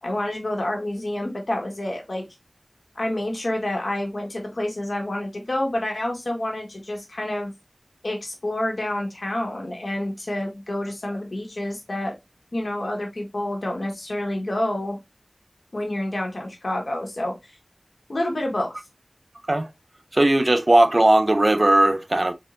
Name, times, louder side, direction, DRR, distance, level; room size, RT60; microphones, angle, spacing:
voice 1, 0.0-2.2 2.9-7.5 8.0-12.1 12.5-15.0 15.7-17.5 18.1-18.8, left 1 dB, 80° left, 1.5 m, -28 dB
voice 2, 20.1-22.3, right 1 dB, 45° right, 0.5 m, -18 dB
3.9 x 3.6 x 2.6 m
wide cardioid pair, 45°, 0 cm